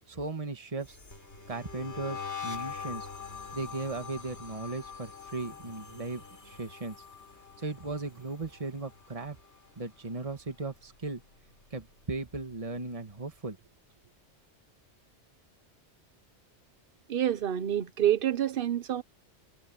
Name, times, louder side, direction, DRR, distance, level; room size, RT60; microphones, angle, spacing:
voice 1, 0.1-1.0 1.5-3.1 3.5-7.0 7.6-9.4 9.8-11.2 11.7-13.6, right 3 dB, 30° right, 1.7 m, -37 dB
sound 1, 0.8-10.0 10.3-10.7 11.0-12.6, left 6 dB, 70° left, 5.9 m, -44 dB
voice 2, 17.1-19.0, right 11 dB, 55° right, 0.9 m, -27 dB
omnidirectional pair, 1.2 m